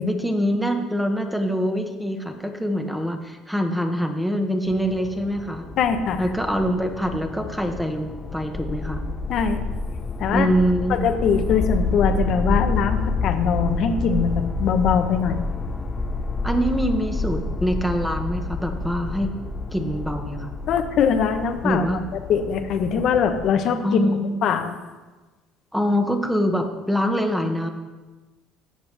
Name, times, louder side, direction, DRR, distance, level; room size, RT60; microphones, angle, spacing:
voice 1, 0.0-5.6 6.2-9.0 10.3-11.0 16.4-19.3 19.7-20.5 21.6-22.0 23.8-24.4 25.7-27.7, equal, ahead, 5 dB, 1.4 m, -24 dB
sound 1, 4.7-23.4, left 3 dB, 30° left, 0.7 m, -29 dB
voice 2, 5.8-6.3 9.3-9.6 10.2-10.5 10.9-15.5 20.7-21.8 22.3-24.8, left 7 dB, 60° left, 6 dB, 1.1 m, -22 dB
14.0 x 6.8 x 3.5 m, 1.2 s
supercardioid pair, 85°, 0 cm